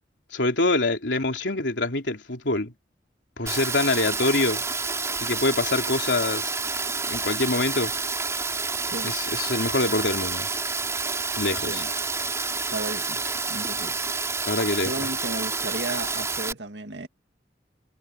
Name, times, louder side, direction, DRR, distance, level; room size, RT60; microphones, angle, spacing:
voice 1, 0.3-2.7 3.4-4.6 5.2-6.5 7.1-7.9 9.0-10.5 11.4-11.8 14.5-14.9, left 2 dB, 90° left, 3.2 m, -25 dB
Rain, 3.5-16.5, right 4 dB, 15° right, 3.8 m, -29 dB
voice 2, 8.8-9.2 11.6-11.9 12.7-13.2 13.5-14.0 14.8-17.1, right 2 dB, 75° right, 2.1 m, -34 dB
head